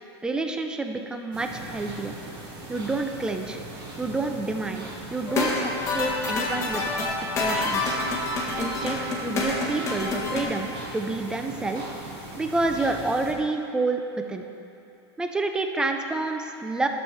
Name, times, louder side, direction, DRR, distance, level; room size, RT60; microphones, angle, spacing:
voice 1, 0.2-2.1 2.7-3.6 4.0-6.8 7.4-9.0 9.2-11.8 12.4-14.4 15.2-16.9, right 3 dB, 5° right, 5 dB, 0.3 m, -29 dB
sound 1, 1.3-13.3, right 2 dB, 30° right, 1.4 m, -40 dB
sound 2, 5.3-10.4, left 2 dB, 20° left, 1.1 m, -27 dB
11.5 x 7.1 x 3.2 m, 2.7 s
supercardioid pair, 150°, 14 cm